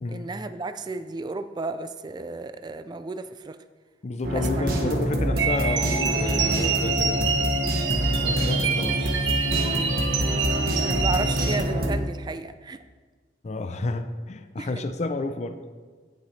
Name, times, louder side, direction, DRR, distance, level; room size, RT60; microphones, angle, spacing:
voice 1, 0.1-3.6 4.3-5.0 6.4-6.7 9.7-10.0 10.8-12.8 14.6-14.8, right 3 dB, 25° right, 10 dB, 0.3 m, -34 dB
voice 2, 4.0-7.5 8.2-9.0 13.4-15.6, left 2 dB, 40° left, 8 dB, 0.4 m, -31 dB
sound 1, 4.2-11.9, equal, 55° right, 1.3 m, -26 dB
sound 2, 5.4-11.6, right 5 dB, 80° right, 1.1 m, -27 dB
16.0 x 6.6 x 3.2 m, 1.5 s
head